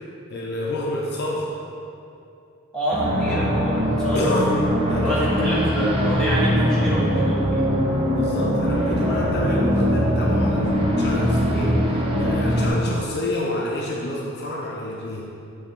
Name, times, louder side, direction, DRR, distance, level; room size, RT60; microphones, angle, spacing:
voice 1, 0.3-1.5 4.1-4.6 4.9-5.2 8.1-10.7 11.0-15.2, left 1 dB, 45° left, -3 dB, 0.6 m, -28 dB
voice 2, 2.7-4.2 5.0-7.7, equal, 5° left, -8 dB, 1.2 m, -26 dB
sound 1, 2.9-12.7, equal, 25° right, 0.7 m, -21 dB
6.8 x 3.3 x 5.2 m, 2.6 s
head